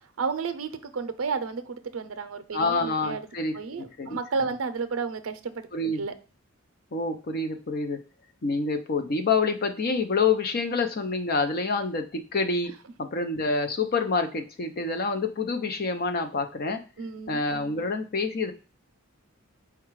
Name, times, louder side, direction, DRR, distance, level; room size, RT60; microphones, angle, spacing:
voice 1, 0.2-3.2 3.5-5.7 6.0-6.1 17.0-17.4, right 5 dB, 80° right, 10 dB, 0.5 m, -32 dB
voice 2, 2.5-4.2 5.7-6.0 6.9-8.0 8.4-12.7 13.0-16.8 17.3-18.5, left 4 dB, 50° left, 7 dB, 0.6 m, -27 dB
4.8 x 2.3 x 4.5 m, 0.35 s
head